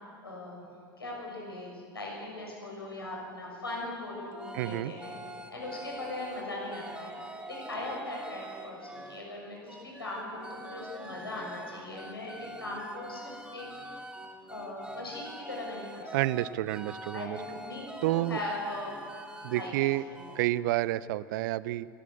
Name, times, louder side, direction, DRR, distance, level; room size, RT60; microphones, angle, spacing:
voice 1, 0.2-0.6 1.0-5.1 5.5-7.1 7.5-13.7 14.5-16.1 17.1-18.9 19.5-19.7 20.1-20.2, left 2 dB, 80° left, -2 dB, 6.5 m, -39 dB
sound 1, 3.7-3.9 4.3-9.2 9.7-20.5, right 1 dB, 5° right, 1.5 m, -45 dB
voice 2, 4.5-4.9 16.1-17.4 18.0-18.4 19.4-20.0 20.4-21.9, right 16 dB, 55° right, 19 dB, 0.6 m, -29 dB
23.5 x 13.5 x 8.3 m, 2.2 s
figure-of-eight pair, 80°, 12 cm